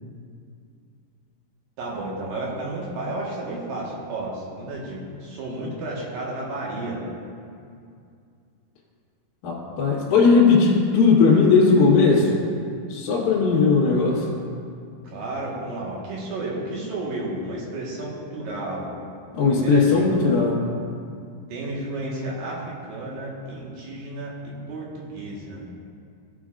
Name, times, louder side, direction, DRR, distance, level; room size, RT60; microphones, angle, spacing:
voice 1, 1.8-7.0 15.0-18.9 19.5-20.4 21.5-24.3 24.7-25.7, right 2 dB, 65° right, -4 dB, 2.9 m, -32 dB
voice 2, 9.4-12.3 12.9-14.2 19.3-20.5, left 4 dB, 65° left, -7 dB, 2.9 m, -18 dB
16.0 x 7.0 x 2.5 m, 2.4 s
omnidirectional pair, 4.9 m